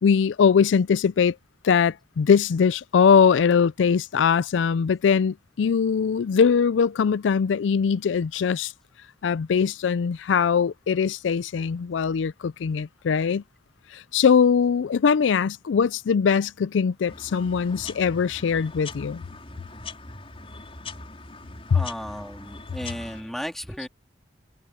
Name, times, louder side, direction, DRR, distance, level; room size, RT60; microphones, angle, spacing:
voice 1, 0.0-1.4 1.6-8.7 9.2-13.4 13.9-19.2 21.7-21.8, left 6 dB, 80° left, 0.4 m, -21 dB
sound 1, 17.1-23.2, left 3 dB, 30° left, 5.1 m, -41 dB
voice 2, 21.7-23.9, equal, ahead, 2.9 m, -35 dB
head